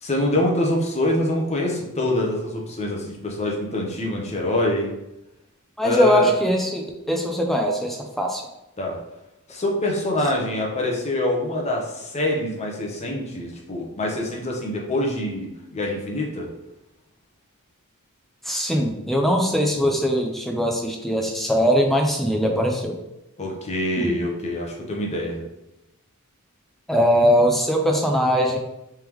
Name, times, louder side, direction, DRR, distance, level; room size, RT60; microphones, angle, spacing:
voice 1, 0.0-4.9 5.8-6.3 8.8-9.0 9.5-16.5 23.4-25.4, left 1 dB, 30° left, -1 dB, 0.8 m, -25 dB
voice 2, 5.8-8.4 18.4-23.0 24.0-24.1 26.9-28.6, equal, ahead, 1 dB, 0.4 m, -21 dB
3.5 x 3.5 x 3.0 m, 0.91 s
head